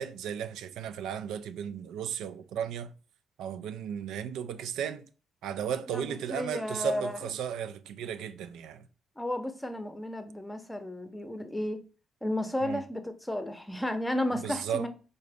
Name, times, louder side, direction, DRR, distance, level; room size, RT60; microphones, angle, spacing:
voice 1, 0.0-2.9 3.4-5.1 5.4-8.9 12.6-12.8 14.4-14.9, right 8 dB, 85° right, 0.4 m, -35 dB
voice 2, 5.9-7.3 9.2-11.8 12.2-14.9, left 1 dB, 10° left, 0.7 m, -33 dB
4.0 x 3.8 x 3.4 m
cardioid pair, 90°, 0 cm